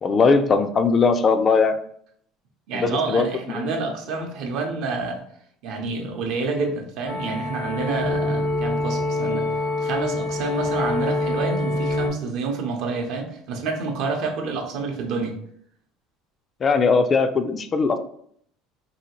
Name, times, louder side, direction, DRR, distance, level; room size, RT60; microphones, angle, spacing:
voice 1, 0.0-1.8 2.7-3.7 16.6-18.0, left 4 dB, 35° left, 9 dB, 0.3 m, -20 dB
voice 2, 2.7-5.2 5.6-9.5 9.8-15.3, right 4 dB, 70° right, 3 dB, 0.6 m, -28 dB
sound 1, 7.1-12.1, left 2 dB, 85° left, 0.8 m, -25 dB
2.8 x 2.7 x 2.9 m, 0.65 s
supercardioid pair, 100°, 0 cm